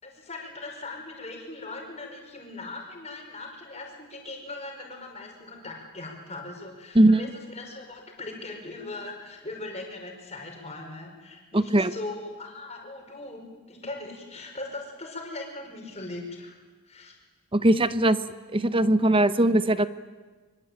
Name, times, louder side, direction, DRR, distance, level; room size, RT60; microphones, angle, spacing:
voice 1, 0.0-16.5 16.9-17.1, left 2 dB, 30° left, 2 dB, 5.3 m, -39 dB
voice 2, 6.9-7.3 11.5-11.9 17.5-18.2 18.5-19.9, right 1 dB, 25° right, 13 dB, 0.9 m, -20 dB
25.0 x 24.0 x 9.0 m, 1.3 s
head